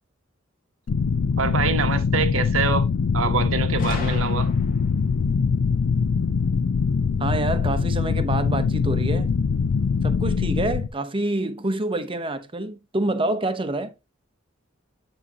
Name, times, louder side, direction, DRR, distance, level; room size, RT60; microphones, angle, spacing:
sound 1, 0.9-10.9, left 5 dB, 75° left, 0.4 m, -23 dB
voice 1, 1.4-2.9 3.1-4.5, right 5 dB, 80° right, 1.0 m, -25 dB
Gunshot gunfire, 3.8-5.0, left 3 dB, 45° left, 1.7 m, -36 dB
voice 2, 7.2-9.3 10.0-13.9, right 2 dB, 25° right, 0.8 m, -27 dB
7.7 x 6.1 x 2.8 m
head